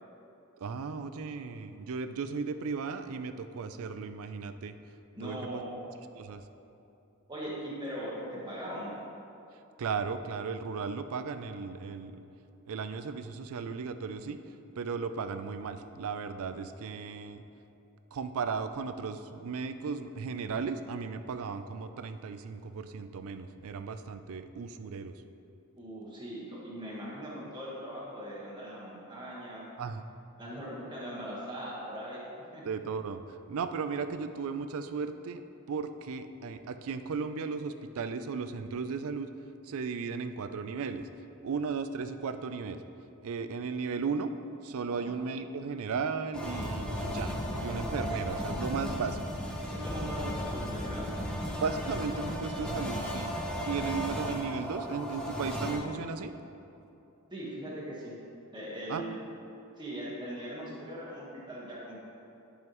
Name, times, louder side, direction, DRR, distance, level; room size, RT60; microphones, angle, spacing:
voice 1, 0.6-4.8 5.2-5.6 6.1-6.4 9.8-12.2 12.7-14.4 14.8-17.4 18.1-25.1 29.8-30.0 32.6-33.2 33.5-39.3 39.6-41.1 41.4-42.8 43.2-44.3 44.6-49.2 51.6-53.3 53.6-56.3 58.9-59.0, right 5 dB, 65° right, 10 dB, 0.4 m, -35 dB
voice 2, 5.2-5.9 7.3-8.9 25.8-29.6 30.4-32.2 32.5-32.6 45.0-45.1 49.6-51.2 57.3-58.2 58.5-59.2 59.8-62.0, equal, 20° right, -7 dB, 1.4 m, -40 dB
sound 1, 46.3-55.8, equal, 5° left, 0.8 m, -35 dB
10.5 x 5.5 x 3.0 m, 2.8 s
head